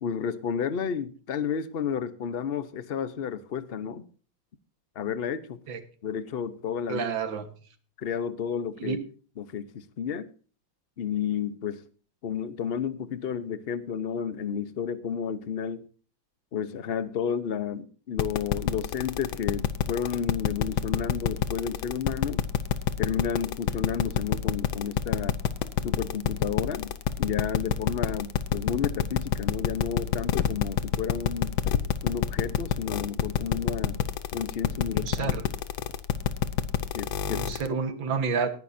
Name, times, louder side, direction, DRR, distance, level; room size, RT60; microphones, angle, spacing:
voice 1, 0.0-4.1 5.0-5.6 6.0-7.1 8.0-9.0 9.4-10.3 11.0-11.8 12.2-15.9 16.5-22.4 23.0-25.4 25.8-31.6 32.0-34.0 34.3-35.3 36.9-37.4 37.7-37.8, left 7 dB, 45° left, 0.8 m, -31 dB
voice 2, 6.9-7.5 8.8-9.0 34.9-35.4 37.2-38.5, right 5 dB, 80° right, 2.1 m, -29 dB
sound 1, 18.2-37.7, left 10 dB, 90° left, 1.6 m, -26 dB
19.0 x 11.0 x 2.7 m
omnidirectional pair, 2.1 m